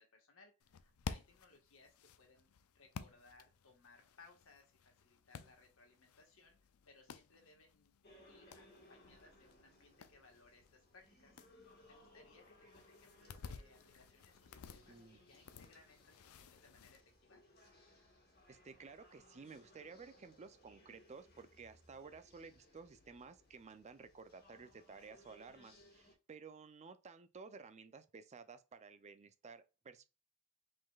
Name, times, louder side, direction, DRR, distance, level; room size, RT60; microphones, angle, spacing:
voice 1, 0.0-6.6 6.9-7.9 8.3-11.4 11.9-17.4, left 3 dB, 65° left, 1.5 m, -65 dB
sound 1, 0.6-17.0, left 6 dB, 85° left, 0.4 m, -54 dB
sound 2, 8.0-26.1, left 1 dB, 50° left, 1.5 m, -65 dB
voice 2, 14.9-15.2 15.5-15.6 18.5-30.0, right 5 dB, 30° right, 0.4 m, -54 dB
5.1 x 3.8 x 2.4 m
head